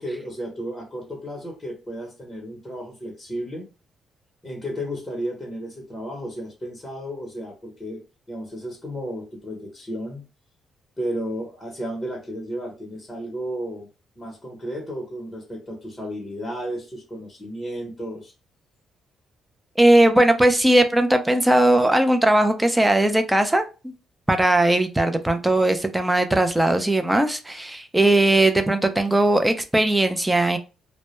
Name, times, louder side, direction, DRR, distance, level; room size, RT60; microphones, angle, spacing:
voice 1, 0.0-3.7 4.4-8.0 8.3-10.2 11.0-13.9 14.2-18.3 25.5-25.6, equal, 20° left, -1 dB, 0.8 m, -33 dB
voice 2, 19.8-23.9 24.3-30.6, right 1 dB, 10° right, 7 dB, 0.4 m, -19 dB
2.2 x 2.0 x 2.9 m, 0.31 s
cardioid pair, 90°, 0 cm